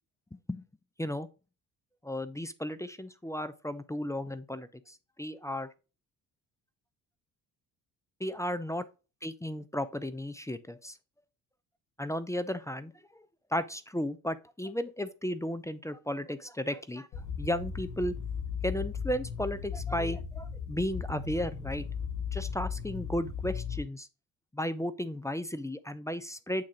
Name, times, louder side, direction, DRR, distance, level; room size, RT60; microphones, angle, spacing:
voice 1, 2.0-5.7 8.2-8.8 9.2-11.0 12.0-12.9 13.5-18.1 18.6-21.9 22.3-24.1 24.5-26.6, left 1 dB, 5° left, 0.6 m, -34 dB
sound 1, 17.1-23.8, left 6 dB, 60° left, 1.5 m, -36 dB
8.5 x 3.8 x 3.8 m
hypercardioid pair, 45°, 48 cm